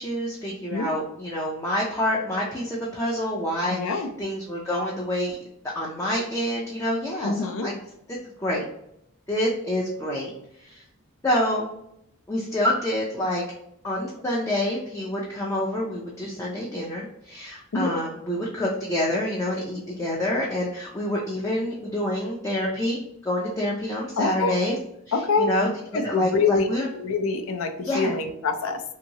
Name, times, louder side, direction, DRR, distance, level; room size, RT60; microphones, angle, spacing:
voice 1, 0.0-5.3 5.7-7.7 8.1-8.7 9.3-10.3 10.6-10.8 11.2-11.7 12.3-13.4 13.8-24.8 25.4-26.9 27.9-28.1, left 1 dB, 15° left, -5 dB, 0.4 m, -27 dB
voice 2, 3.7-4.1 7.2-7.7 17.7-17.9 24.2-24.6 25.1-25.5 25.9-26.7 26.9-28.8, left 4 dB, 70° left, 6 dB, 0.5 m, -25 dB
2.8 x 2.6 x 2.7 m, 0.77 s
head